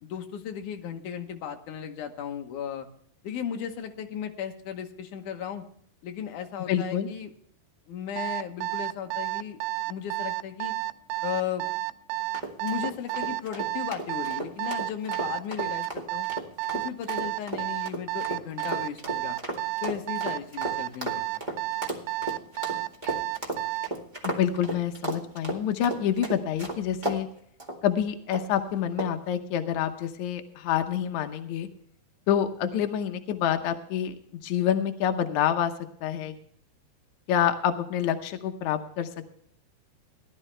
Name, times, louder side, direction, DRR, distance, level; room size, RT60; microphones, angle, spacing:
voice 1, 0.0-2.9 3.2-5.6 6.0-7.3 7.9-9.6 9.9-10.7 11.2-11.7 12.6-16.3 16.7-19.4 19.8-21.4, left 8 dB, 65° left, 4 dB, 2.2 m, -35 dB
voice 2, 6.7-7.1 24.2-27.3 27.8-31.7 32.3-34.1 34.4-35.7 36.0-36.3 37.3-39.1, left 9 dB, 85° left, 7 dB, 1.6 m, -27 dB
Alarm, 8.2-24.0, right 20 dB, 90° right, 2.7 m, -31 dB
sound 1, 12.3-27.2 27.6-27.8 28.3-28.6 29.0-29.3, right 1 dB, 60° right, 0.4 m, -34 dB
17.5 x 12.0 x 3.3 m, 0.64 s
omnidirectional pair, 4.6 m